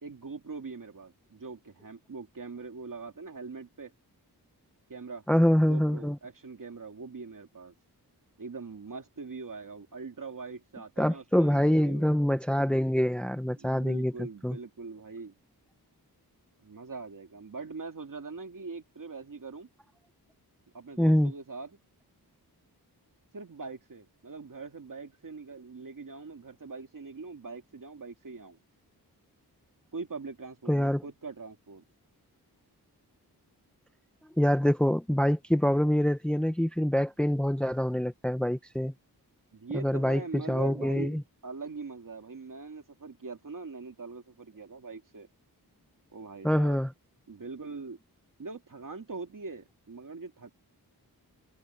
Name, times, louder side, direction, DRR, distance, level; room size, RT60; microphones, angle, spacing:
voice 1, 0.0-3.9 4.9-5.2 5.7-7.7 8.4-12.1 13.6-15.3 16.6-19.7 20.7-21.8 23.3-28.6 29.9-31.8 39.5-45.3 46.1-46.8 47.3-48.0 48.4-50.5, right 4 dB, 55° right, 2.5 m, -42 dB
voice 2, 5.3-6.2 11.0-14.1 14.4-14.6 21.0-21.3 30.7-31.0 34.4-38.9 39.7-41.2 46.4-46.9, equal, 5° left, 0.9 m, -25 dB
wide cardioid pair, 90°, 39 cm